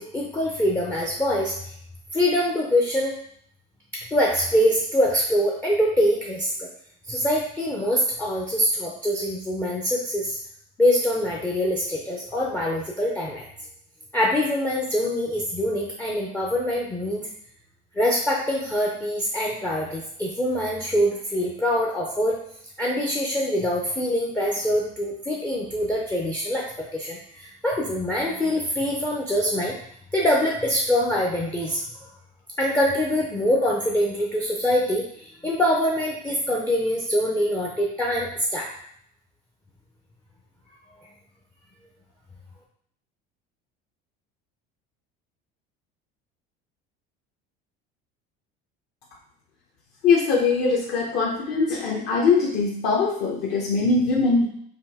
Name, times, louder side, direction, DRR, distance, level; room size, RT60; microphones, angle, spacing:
voice 1, 0.0-1.5 2.1-3.1 3.9-6.7 7.1-10.4 10.8-13.5 14.1-17.3 17.9-22.4 22.8-29.8 30.1-31.8 32.6-38.7, equal, 10° left, -2 dB, 0.4 m, -24 dB
voice 2, 50.0-54.5, left 4 dB, 50° left, -3 dB, 0.8 m, -21 dB
5.3 x 2.5 x 3.4 m, 0.66 s
cardioid pair, 170°, 21 cm